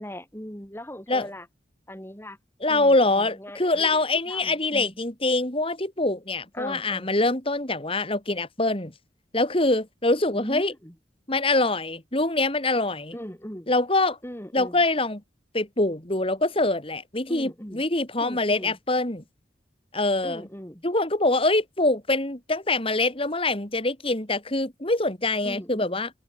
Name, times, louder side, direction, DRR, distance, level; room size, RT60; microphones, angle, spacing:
voice 1, 0.0-1.5 1.9-2.4 2.7-4.9 6.5-7.1 10.3-11.0 13.1-13.7 14.2-14.8 17.3-17.8 18.2-18.8 20.2-20.8 25.4-26.0, equal, 15° left, 5.1 m, -39 dB
voice 2, 2.6-8.9 9.3-10.7 11.3-13.1 13.7-14.2 14.5-15.2 15.5-19.2 19.9-20.5 20.8-26.1, left 2 dB, 30° left, 3.1 m, -24 dB
head